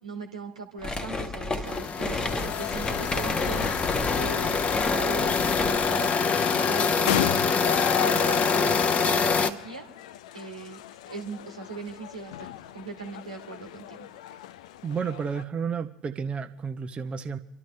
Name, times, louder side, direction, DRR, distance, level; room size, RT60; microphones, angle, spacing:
voice 1, 0.0-3.7 4.2-6.2 6.5-9.8 10.3-14.1, right 5 dB, 85° right, 1.6 m, -39 dB
sound 1, 0.8-6.0, left 2 dB, 20° left, 1.3 m, -31 dB
sound 2, 1.7-9.5, left 5 dB, 35° left, 0.9 m, -25 dB
sound 3, 2.0-15.4, left 13 dB, 70° left, 0.4 m, -36 dB
voice 2, 14.8-17.4, right 6 dB, 30° right, 0.9 m, -31 dB
29.0 x 12.0 x 3.2 m
figure-of-eight pair, 65°, 4 cm